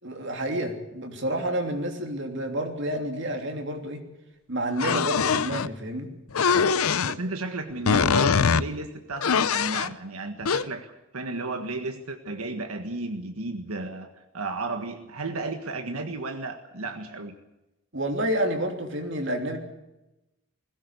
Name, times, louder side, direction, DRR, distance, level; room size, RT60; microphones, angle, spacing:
voice 1, 0.0-4.0 4.5-6.1 17.9-19.6, right 1 dB, 55° right, 4 dB, 3.1 m, -29 dB
sound 1, 4.8-5.7 6.3-7.2 7.8-8.6 9.2-9.9 10.4-10.6, left 6 dB, 80° left, 0.7 m, -22 dB
voice 2, 7.1-17.4, right 2 dB, 85° right, 6 dB, 1.6 m, -33 dB
21.0 x 17.0 x 8.3 m, 0.98 s
head